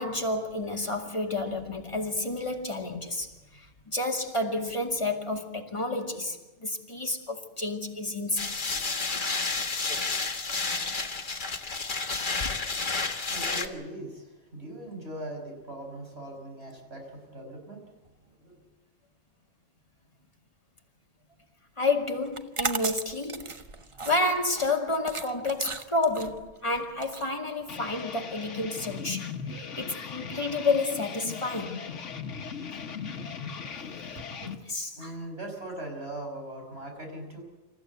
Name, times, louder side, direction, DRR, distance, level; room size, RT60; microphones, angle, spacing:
voice 1, 0.0-8.6 21.8-23.5 24.0-31.9 32.7-32.8 34.4-35.1, left 2 dB, 25° left, 2.4 m, -30 dB
sound 1, 8.4-13.7, left 4 dB, 45° left, 1.5 m, -30 dB
voice 2, 12.4-17.8 18.4-18.6 34.3-34.7 35.0-37.4, right 1 dB, 60° right, 5.8 m, -41 dB
sound 2, 22.3-28.0, right 4 dB, 30° right, 0.7 m, -36 dB
sound 3, 27.7-34.6, left 6 dB, 75° left, 1.5 m, -38 dB
26.5 x 14.5 x 8.2 m
omnidirectional pair, 1.2 m